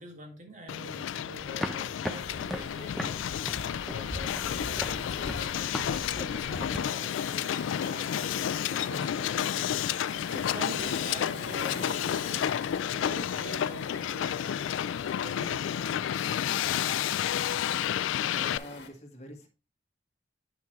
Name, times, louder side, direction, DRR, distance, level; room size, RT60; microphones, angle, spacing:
voice 1, 0.0-14.6 15.2-16.2, equal, 40° right, 2 dB, 2.0 m, -46 dB
Hiss, 0.7-18.6, left 10 dB, 85° left, 0.3 m, -31 dB
sound 1, 1.4-6.8, equal, ahead, 0.6 m, -38 dB
Waves surf, 2.1-18.9, left 3 dB, 60° left, 1.6 m, -45 dB
voice 2, 18.2-19.5, left 1 dB, 35° left, 2 dB, 1.7 m, -45 dB
9.0 x 5.9 x 3.1 m, 0.33 s
head